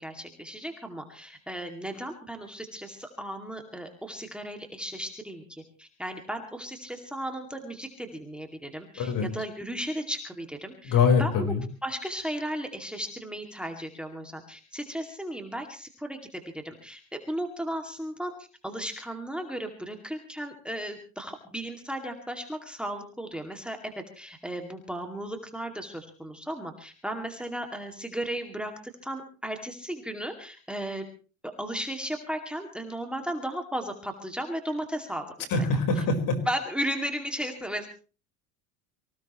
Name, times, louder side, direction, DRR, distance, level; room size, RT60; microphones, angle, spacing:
voice 1, 0.0-11.5 11.8-18.3 18.6-28.7 29.0-31.0 31.6-35.5 36.5-37.9, right 1 dB, ahead, 5 dB, 2.4 m, -35 dB
voice 2, 9.0-9.3 10.8-11.6 35.5-36.4, left 5 dB, 50° left, 6 dB, 4.7 m, -23 dB
24.5 x 17.0 x 3.1 m, 0.37 s
supercardioid pair, 115°, 43 cm